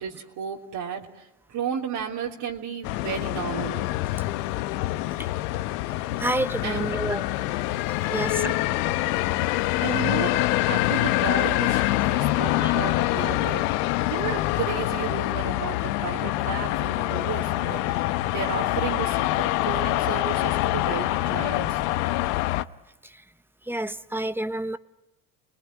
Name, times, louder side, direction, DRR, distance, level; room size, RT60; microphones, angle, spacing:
voice 1, 0.0-3.9 6.6-7.0 8.1-8.5 9.8-21.8, right 7 dB, 60° right, -1 dB, 3.4 m, -33 dB
sound 1, 2.8-22.6, left 17 dB, 75° left, 1.1 m, -25 dB
voice 2, 6.2-7.2 7.9-8.5 9.2-9.7 10.0-10.1 12.6-12.7 23.0-23.2 23.6-24.8, right 1 dB, 5° right, 13 dB, 1.1 m, -30 dB
29.5 x 20.5 x 9.7 m, 0.94 s
hypercardioid pair, 85°, 46 cm